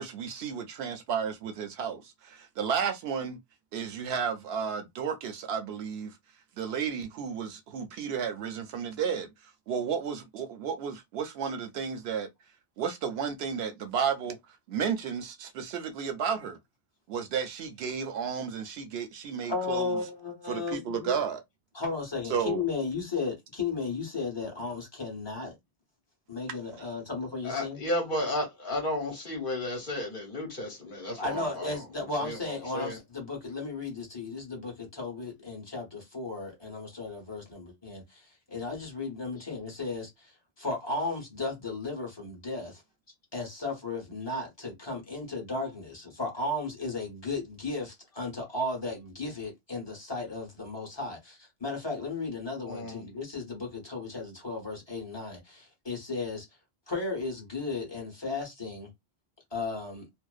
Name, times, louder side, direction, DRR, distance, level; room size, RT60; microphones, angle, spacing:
voice 1, 0.0-3.4 3.7-6.2 6.6-9.3 9.7-12.3 12.8-14.4 14.7-16.6 17.1-20.0 20.5-21.4 22.3-22.6, right 7 dB, 80° right, 0.8 m, -32 dB
voice 2, 19.4-21.2 21.7-25.6 26.3-27.8 31.2-38.2 38.5-40.3 40.6-42.8 43.3-56.5 56.9-58.9 59.5-60.1, left 3 dB, 25° left, 1.0 m, -35 dB
voice 3, 27.4-31.8 32.2-33.0 52.7-53.1, left 1 dB, 55° left, 1.2 m, -33 dB
2.6 x 2.0 x 2.3 m
omnidirectional pair, 1.0 m